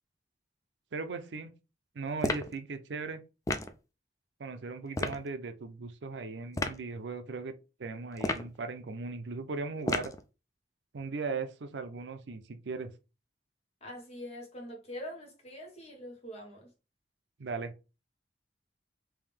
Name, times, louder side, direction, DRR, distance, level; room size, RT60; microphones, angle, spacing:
voice 1, 0.9-1.5 1.9-3.2 4.4-7.5 7.8-10.1 10.9-12.9 17.4-17.7, right 4 dB, 75° right, 0.5 m, -38 dB
sound 1, 2.2-2.5 3.5-3.7 4.9-5.2 6.5-6.8 8.2-8.6 9.9-10.2, left 2 dB, 20° left, 0.3 m, -31 dB
voice 2, 13.8-16.7, left 1 dB, 35° left, 1.2 m, -44 dB
3.5 x 2.7 x 3.4 m
head